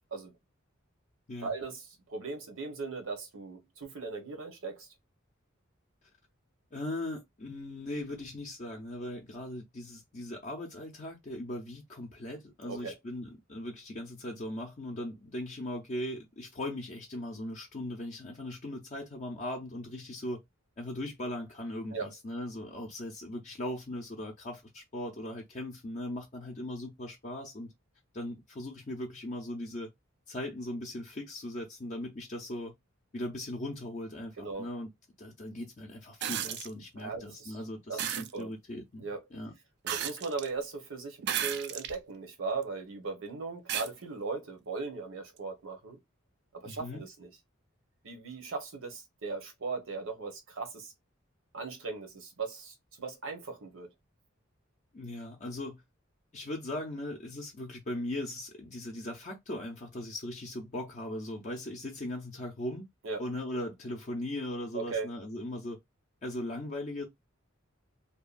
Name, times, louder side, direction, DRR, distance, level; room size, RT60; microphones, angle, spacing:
voice 1, 1.4-4.9 12.7-12.9 21.9-22.1 34.4-34.7 37.0-37.6 37.9-38.5 39.0-39.2 39.8-46.0 46.5-47.3 48.0-50.9 51.5-53.9 63.0-63.2 64.7-65.1, right 4 dB, 70° right, 1.0 m, -38 dB
voice 2, 6.7-20.4 20.8-27.7 28.1-29.9 30.3-32.7 33.1-34.9 35.2-39.5 46.6-47.0 54.9-55.8 56.3-62.8 63.2-65.8 66.2-67.0, left 1 dB, 35° left, 0.5 m, -39 dB
sound 1, 36.2-36.7 38.0-38.3 39.9-40.5 41.2-42.0 42.6-42.7 43.7-43.9 45.4-45.5, right 10 dB, 55° right, 0.3 m, -33 dB
2.7 x 2.3 x 2.4 m
head